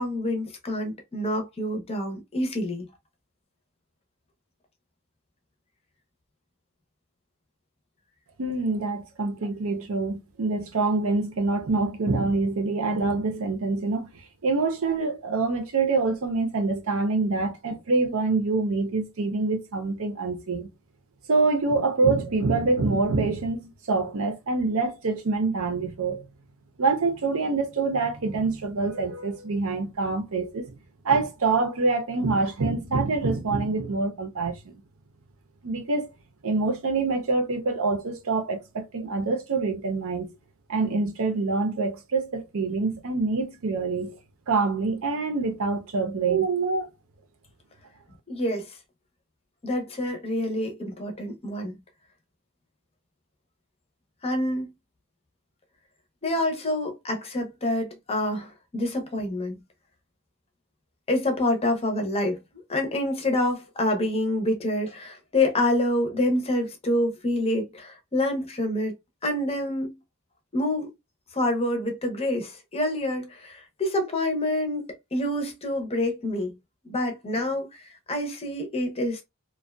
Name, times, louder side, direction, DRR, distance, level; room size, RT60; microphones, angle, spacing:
voice 1, 0.0-2.9 48.3-48.8 49.6-51.8 54.2-54.7 56.2-59.6 61.1-62.4 62.7-69.0 69.2-70.0 70.5-70.9 71.3-74.9 75.1-76.5 76.8-79.2, left 1 dB, 25° left, 0.6 m, -27 dB
voice 2, 8.4-20.7 21.3-26.3 26.8-30.7 31.0-34.8 35.6-36.1 36.4-40.3 40.7-44.1 44.5-46.9, right 3 dB, 65° right, 0.6 m, -26 dB
2.5 x 2.2 x 2.2 m
head